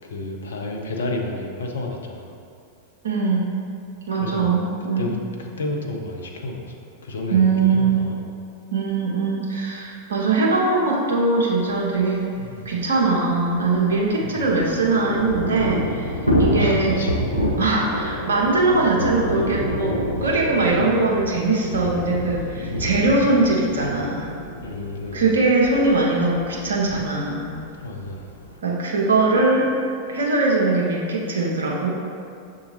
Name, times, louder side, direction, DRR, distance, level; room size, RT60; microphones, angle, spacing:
voice 1, 0.0-2.3 4.1-6.8 7.0-8.3 12.4-12.7 14.2-14.5 16.4-17.2 20.7-20.9 22.6-23.0 24.6-25.4 27.8-28.3, left 2 dB, 65° left, 1 dB, 0.5 m, -31 dB
voice 2, 3.0-3.5 4.1-5.1 7.3-8.0 8.7-12.2 12.6-16.1 16.4-17.0 17.6-24.3 25.1-27.5 28.6-29.7 30.1-31.9, right 3 dB, 65° right, -3 dB, 0.8 m, -21 dB
Thunder / Rain, 12.0-12.1 12.3-12.4 12.7-28.6, equal, 90° right, 0.4 m, -28 dB
6.7 x 2.8 x 2.8 m, 2.5 s
figure-of-eight pair, 90°, 0 cm